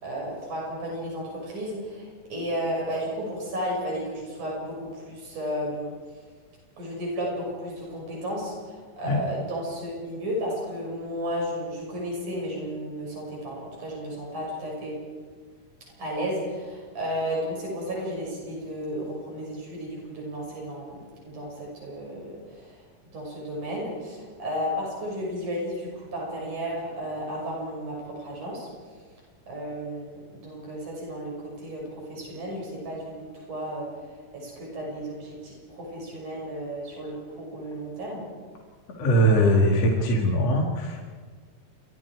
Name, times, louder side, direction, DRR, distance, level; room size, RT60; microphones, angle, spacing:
voice 1, 0.0-5.9 6.8-15.0 16.0-22.8 23.1-28.7 29.5-31.8 32.1-33.9 34.3-38.2, equal, 90° right, -2 dB, 7.9 m, -33 dB
voice 2, 39.0-41.0, equal, 55° left, 0 dB, 3.4 m, -21 dB
28.5 x 24.0 x 4.8 m, 1.6 s
omnidirectional pair, 3.5 m